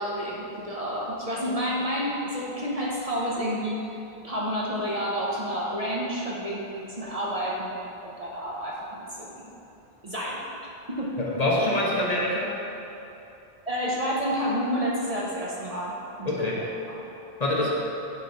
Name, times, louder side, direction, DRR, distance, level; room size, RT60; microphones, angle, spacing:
voice 1, 0.0-3.8 4.2-9.5 10.0-10.4 10.9-11.1 13.7-17.0, equal, 40° right, -5 dB, 0.8 m, -30 dB
voice 2, 11.2-12.6 16.2-16.6 17.4-17.7, left 1 dB, 40° left, -5 dB, 1.0 m, -25 dB
8.6 x 3.0 x 5.2 m, 3.0 s
omnidirectional pair, 1.0 m